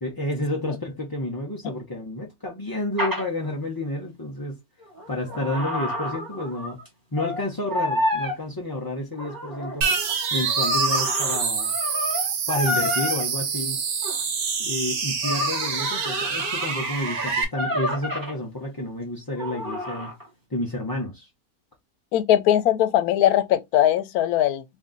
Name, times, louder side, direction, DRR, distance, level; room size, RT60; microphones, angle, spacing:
voice 1, 0.0-4.6 5.1-6.8 7.1-9.9 10.3-11.8 12.5-13.8 14.6-20.1 20.5-21.3, left 1 dB, 30° left, 0.4 m, -30 dB
sound 1, 3.0-3.2 4.8-6.9 7.2-7.4 7.7-8.4 9.1-13.2 14.0-14.2 15.2-18.3 19.4-20.3, left 1 dB, 15° right, 0.9 m, -29 dB
sound 2, 9.8-17.4, right 6 dB, 85° right, 1.3 m, -26 dB
voice 2, 22.1-24.6, left 11 dB, 90° left, 1.1 m, -20 dB
2.9 x 2.6 x 3.7 m
omnidirectional pair, 1.5 m